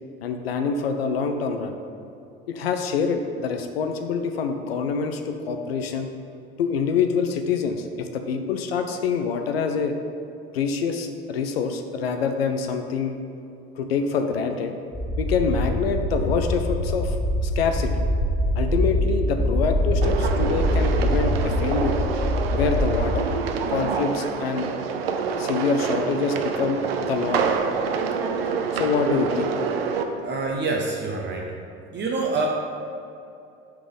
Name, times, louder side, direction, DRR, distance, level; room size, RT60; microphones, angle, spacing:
voice 1, 0.2-1.8 2.5-6.1 6.6-10.0 10.5-13.1 13.8-14.7 15.2-18.0 18.6-22.0 22.5-23.3 23.7-24.7 25.4-27.5 28.7-29.5, left 5 dB, 80° left, 6 dB, 0.5 m, -26 dB
sound 1, 14.9-23.1, equal, 30° left, 1.3 m, -24 dB
sound 2, 20.0-30.0, right 5 dB, 80° right, 0.5 m, -27 dB
voice 2, 30.2-31.6 31.9-32.5, right 3 dB, 35° right, 0 dB, 0.7 m, -26 dB
5.7 x 3.9 x 4.9 m, 2.6 s
hypercardioid pair, 65°, 30 cm